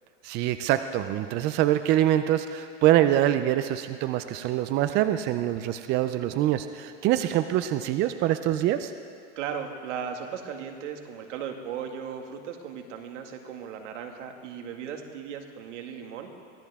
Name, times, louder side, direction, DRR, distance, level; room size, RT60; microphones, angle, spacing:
voice 1, 0.2-8.9, right 12 dB, 30° right, 10 dB, 0.4 m, -24 dB
voice 2, 9.4-16.3, right 7 dB, 75° right, 4 dB, 2.1 m, -37 dB
23.5 x 16.5 x 3.6 m, 2.3 s
supercardioid pair, 140°, 36 cm